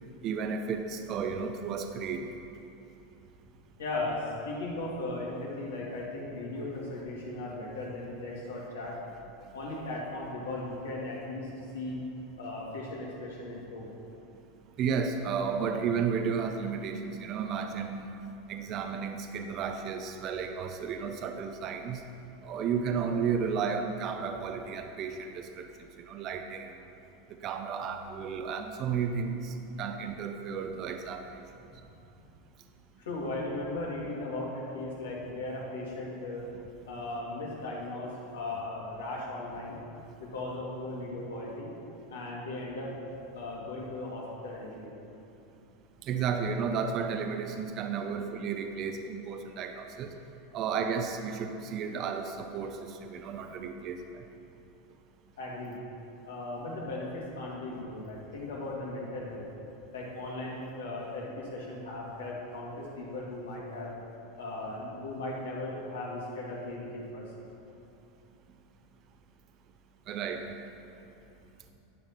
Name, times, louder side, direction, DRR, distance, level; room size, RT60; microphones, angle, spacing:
voice 1, 0.2-2.3 14.8-18.1 18.5-22.0 22.4-25.7 26.0-26.7 27.4-31.2 46.0-50.1 50.5-54.0 70.1-70.4, right 6 dB, 45° right, 6 dB, 0.6 m, -33 dB
voice 2, 3.8-9.0 9.5-12.1 12.4-13.9 33.0-36.5 36.9-39.8 40.2-41.7 42.1-42.9 43.3-44.9 55.4-55.8 56.3-59.5 59.9-63.9 64.4-67.5, left 2 dB, 80° left, -4 dB, 2.1 m, -37 dB
10.5 x 5.8 x 4.3 m, 2.8 s
hypercardioid pair, 95°, 0 cm